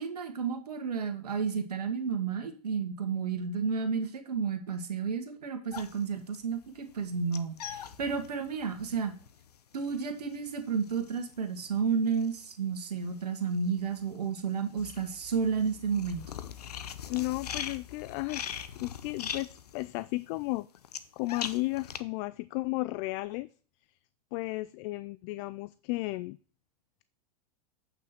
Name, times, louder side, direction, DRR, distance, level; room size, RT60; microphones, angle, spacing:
voice 1, 0.0-9.1 9.7-16.3, right 6 dB, 90° right, 1.6 m, -32 dB
sound 1, 5.7-13.2 13.5-22.0, left 9 dB, 90° left, 0.8 m, -42 dB
voice 2, 17.0-20.7 21.1-23.5 24.3-26.4, left 21 dB, 50° left, 0.4 m, -34 dB
8.2 x 6.0 x 4.3 m
hypercardioid pair, 110°, 20 cm